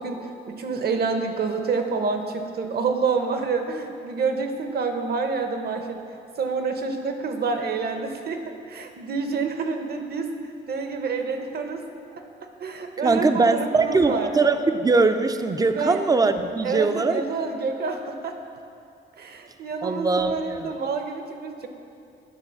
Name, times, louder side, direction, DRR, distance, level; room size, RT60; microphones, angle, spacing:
voice 1, 0.0-6.0 6.4-10.3 10.7-11.8 12.1-14.3 15.7-16.0 16.6-18.4 19.2-21.7, right 4 dB, 50° right, 6 dB, 0.8 m, -28 dB
voice 2, 13.0-17.2 19.8-20.7, right 3 dB, 20° right, 8 dB, 0.4 m, -21 dB
9.8 x 3.9 x 6.2 m, 2.6 s
cardioid pair, 90°, 20 cm